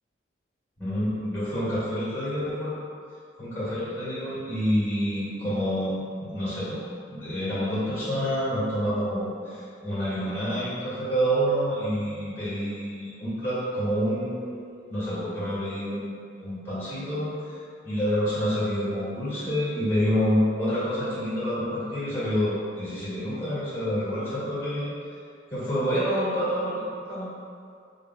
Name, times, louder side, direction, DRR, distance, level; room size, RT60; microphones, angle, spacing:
voice 1, 0.8-2.7 3.4-6.8 7.1-24.9 25.5-27.3, equal, 15° left, -12 dB, 1.3 m, -28 dB
5.0 x 2.0 x 2.3 m, 2.3 s
head